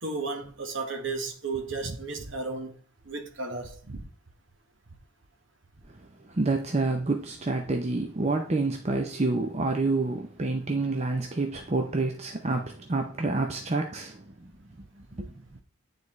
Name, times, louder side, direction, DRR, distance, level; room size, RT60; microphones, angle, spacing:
voice 1, 0.0-2.8 3.0-4.0, right 3 dB, 60° right, 1.3 m, -34 dB
voice 2, 6.4-14.1 15.2-15.3, right 3 dB, 30° right, 0.6 m, -28 dB
9.4 x 4.1 x 3.1 m
head